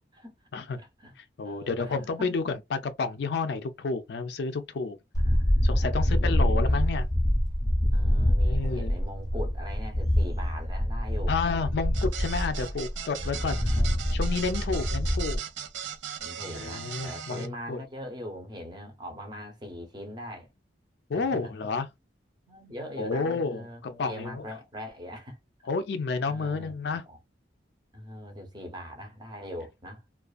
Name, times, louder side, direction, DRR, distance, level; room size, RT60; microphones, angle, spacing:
voice 1, 0.0-1.1 1.4-2.3 5.2-6.8 7.9-11.3 13.2-14.0 14.5-14.9 16.2-20.5 21.1-21.5 22.5-25.4 26.3-27.2 27.9-30.0, equal, 25° right, 0.6 m, -41 dB
voice 2, 1.2-5.0 5.6-7.1 8.4-9.0 11.3-15.4 16.5-17.8 21.1-21.9 23.0-24.4 25.7-27.0, left 4 dB, 60° left, 0.4 m, -31 dB
sound 1, 5.1-15.4, equal, 20° left, 0.5 m, -26 dB
sound 2, 11.9-17.5, right 8 dB, 75° right, 0.5 m, -39 dB
2.4 x 2.3 x 2.3 m
head